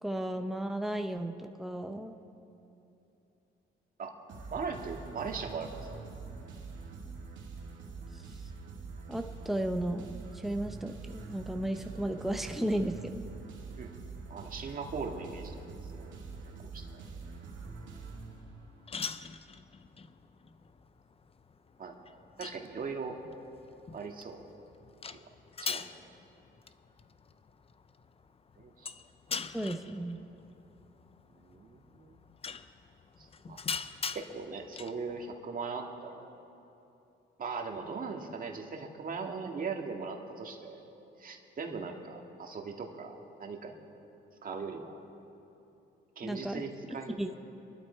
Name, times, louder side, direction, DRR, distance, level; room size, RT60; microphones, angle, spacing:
voice 1, 0.0-2.2 9.1-13.3 29.5-30.2 46.2-46.6 47.2-47.3, right 1 dB, ahead, 5 dB, 0.9 m, -34 dB
sound 1, 4.3-18.9, right 4 dB, 70° right, 2.7 m, -45 dB
voice 2, 4.5-6.0 13.8-13.9 14.3-15.6 16.0-16.2 16.5-16.8 21.8-22.0 22.4-23.2 23.9-24.4 25.1-25.3 25.6-25.9 28.6-28.9 31.3-32.2 33.2-33.6 34.1-36.4 37.4-40.8 41.2-43.7 44.4-45.0 46.2-47.2, right 4 dB, 45° right, 2 dB, 2.0 m, -39 dB
sound 2, 17.6-35.3, left 5 dB, 30° left, 0.6 m, -44 dB
27.0 x 11.5 x 4.5 m, 2.9 s
cardioid pair, 90°, 20 cm